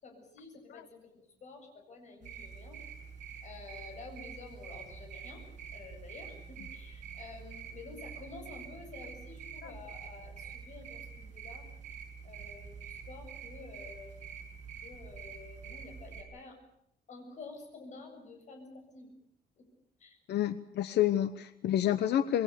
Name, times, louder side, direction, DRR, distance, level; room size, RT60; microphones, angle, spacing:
voice 1, 0.0-2.8 3.4-5.4 5.7-11.7 12.2-14.2 14.8-16.6 17.1-19.1 19.6-19.7 20.0-20.2, left 3 dB, 45° left, 3 dB, 7.2 m, -50 dB
sound 1, 2.2-16.2, right 6 dB, 50° right, 6.8 m, -46 dB
voice 2, 20.3-22.4, left 11 dB, 90° left, 11 dB, 1.0 m, -29 dB
27.0 x 21.5 x 6.9 m, 0.77 s
cardioid pair, 175°, 17 cm